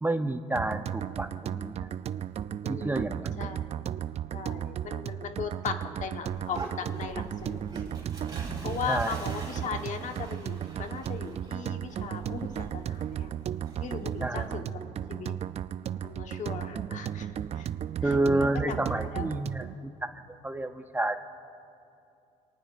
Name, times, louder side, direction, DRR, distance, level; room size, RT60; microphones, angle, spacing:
voice 1, 0.0-1.9 2.7-3.5 8.9-9.2 14.2-14.5 16.7-16.9 18.0-19.7 20.0-20.1 20.4-21.2, right 2 dB, 15° right, 8 dB, 0.8 m, -29 dB
sound 1, 0.6-19.8, right 10 dB, 45° right, 0.5 m, -35 dB
voice 2, 2.6-3.7 4.3-7.6 8.6-13.3 13.8-14.8 15.1-15.3 16.0-17.7 18.0-19.3, left 6 dB, 55° left, 5 dB, 1.3 m, -38 dB
sound 2, 6.3-14.5, right 2 dB, 30° right, 3.9 m, -45 dB
27.0 x 19.0 x 2.6 m, 2.5 s
cardioid pair, 90°, 15 cm